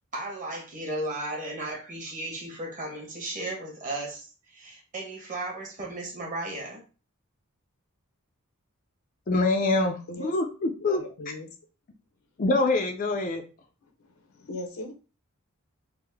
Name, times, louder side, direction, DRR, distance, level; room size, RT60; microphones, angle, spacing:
voice 1, 0.1-6.8, right 2 dB, 35° right, 1.1 m, -35 dB
voice 2, 9.3-11.0 12.4-13.4, left 2 dB, 40° left, 0.4 m, -25 dB
voice 3, 10.8-11.5 14.0-14.9, left 1 dB, 75° left, 0.8 m, -39 dB
3.5 x 2.1 x 3.3 m
head